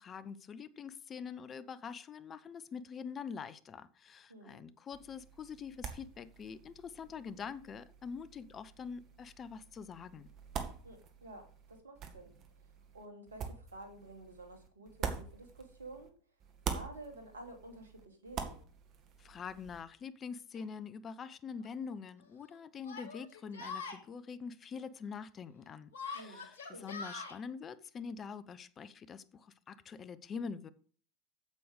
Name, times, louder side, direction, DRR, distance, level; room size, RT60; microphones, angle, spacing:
voice 1, 0.0-10.3 19.2-30.7, left 6 dB, 30° left, 0.8 m, -45 dB
voice 2, 4.3-4.6 10.8-12.4 12.9-16.1 16.7-18.6 26.1-26.9, right 2 dB, 85° right, 2.5 m, -51 dB
sound 1, 4.9-16.1 16.4-19.8, right 6 dB, 45° right, 1.9 m, -45 dB
Yell, 20.5-20.6 21.6-21.7 22.8-24.0 25.9-27.4, left 4 dB, 75° left, 2.9 m, -43 dB
8.4 x 7.9 x 5.0 m
hypercardioid pair, 85°, 0 cm